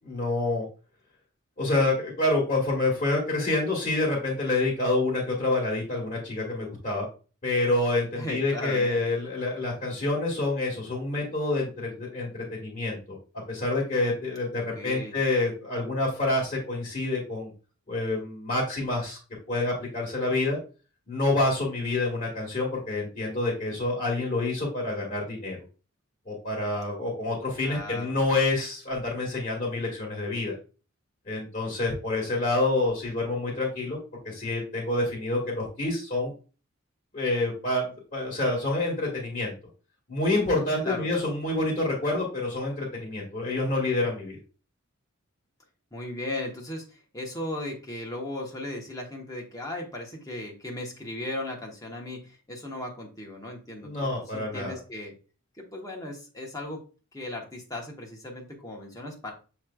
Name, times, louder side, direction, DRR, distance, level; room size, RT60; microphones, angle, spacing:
voice 1, 0.0-0.7 1.6-7.1 7.4-13.2 13.5-17.5 17.9-19.2 19.5-20.6 21.1-25.6 26.3-30.5 31.3-34.0 34.2-36.3 37.1-39.5 40.1-44.4 53.8-54.7, left 2 dB, 35° left, -5 dB, 1.6 m, -27 dB
voice 2, 8.2-8.9 14.7-15.2 27.6-28.2 40.8-41.2 45.9-53.9 54.3-55.1 55.6-56.8 57.1-59.3, left 1 dB, 15° left, -1 dB, 1.0 m, -36 dB
7.2 x 3.1 x 2.3 m, 0.36 s
head